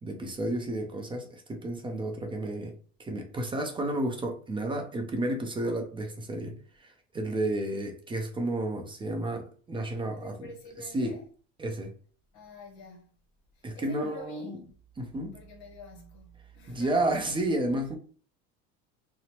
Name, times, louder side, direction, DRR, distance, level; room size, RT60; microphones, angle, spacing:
voice 1, 0.0-2.7 3.0-6.9 7.1-10.3 10.9-11.2 11.6-11.9 13.6-14.6 15.0-15.3 16.7-18.0, right 1 dB, 15° right, 0.5 m, -31 dB
voice 2, 10.1-11.2 12.3-13.1 13.5-14.6 15.3-17.1, left 4 dB, 65° left, 0.9 m, -46 dB
2.8 x 2.0 x 2.8 m
supercardioid pair, 115°, 32 cm